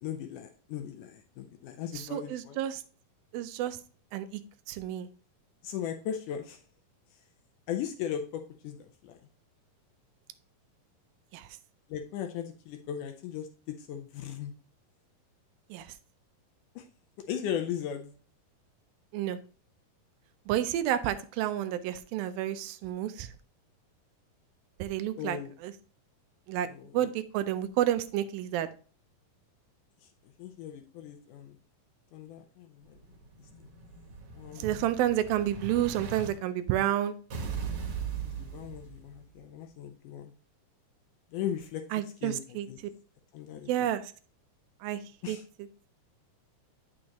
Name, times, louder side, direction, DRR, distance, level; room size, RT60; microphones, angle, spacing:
voice 1, 0.0-2.6 5.6-6.6 7.7-8.8 9.0-9.2 11.9-14.5 16.8-16.9 17.3-18.1 25.2-25.5 26.7-27.1 30.4-31.6 32.1-32.9 34.4-34.9 38.2-40.3 41.3-41.8 42.2-42.8 43.3-43.9 45.2-45.4, left 9 dB, 75° left, 6 dB, 2.0 m, -37 dB
voice 2, 1.9-2.8 3.3-3.8 4.1-4.4 4.7-5.1 11.3-11.4 15.7-15.9 19.1-19.4 20.5-23.3 24.8-25.7 26.5-26.7 26.9-28.7 34.6-37.1 41.9-42.7 43.7-44.0 44.8-45.0 45.3-45.4, right 12 dB, 90° right, 10 dB, 2.4 m, -30 dB
Explosion, 32.9-36.3 37.3-39.3, right 6 dB, 55° right, 2.5 m, -39 dB
8.6 x 6.3 x 2.9 m, 0.40 s
omnidirectional pair, 4.1 m